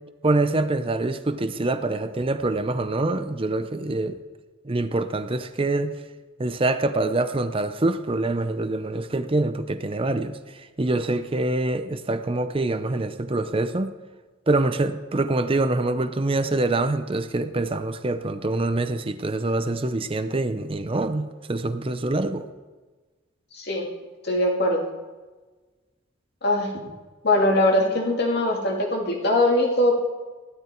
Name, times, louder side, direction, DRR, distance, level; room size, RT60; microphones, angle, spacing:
voice 1, 0.2-4.2 4.6-5.9 6.4-13.9 14.5-22.5, right 2 dB, 30° right, 10 dB, 0.6 m, -25 dB
voice 2, 23.5-23.9 24.2-24.9 26.4-26.7 27.2-30.0, left 1 dB, 55° left, 0 dB, 2.4 m, -21 dB
15.0 x 12.0 x 4.5 m, 1.3 s
head